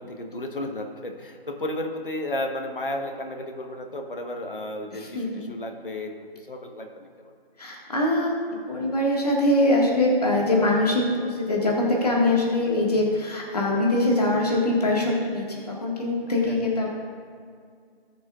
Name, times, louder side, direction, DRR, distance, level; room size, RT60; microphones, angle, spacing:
voice 1, 0.0-7.3 16.4-16.7, left 1 dB, 60° left, 3 dB, 1.3 m, -33 dB
voice 2, 4.9-5.3 7.6-8.4 8.7-16.9, left 1 dB, 40° left, -3 dB, 1.9 m, -23 dB
18.0 x 6.1 x 2.5 m, 2.2 s
figure-of-eight pair, 170°, 30 cm